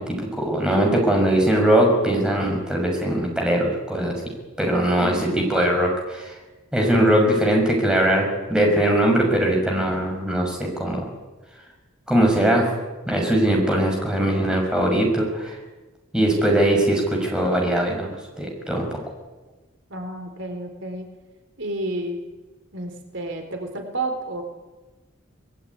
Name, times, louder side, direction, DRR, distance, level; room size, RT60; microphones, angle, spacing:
voice 1, 0.0-4.2 4.6-6.4 6.7-11.0 12.1-12.7 13.1-15.6 16.1-18.1 18.4-19.0, right 1 dB, 5° right, 0 dB, 6.2 m, -21 dB
voice 2, 5.0-5.4 19.9-21.1 21.6-22.2 22.7-24.4, right 2 dB, 60° right, 5 dB, 3.9 m, -31 dB
24.0 x 21.0 x 9.8 m, 1.2 s
head